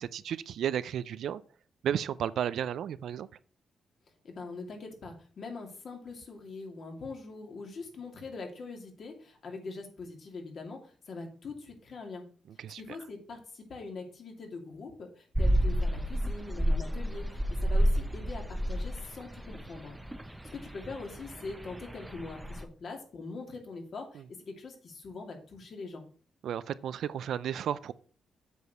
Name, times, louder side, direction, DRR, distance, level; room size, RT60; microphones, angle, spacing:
voice 1, 0.0-1.4 1.8-3.3 12.6-12.8 26.4-27.9, right 9 dB, 75° right, 0.5 m, -33 dB
voice 2, 4.2-12.3 12.8-20.0 20.5-26.0, left 3 dB, 55° left, 2.5 m, -43 dB
sound 1, 15.4-22.6, equal, 10° right, 0.7 m, -30 dB
8.1 x 4.8 x 6.8 m
cardioid pair, 115°, 0 cm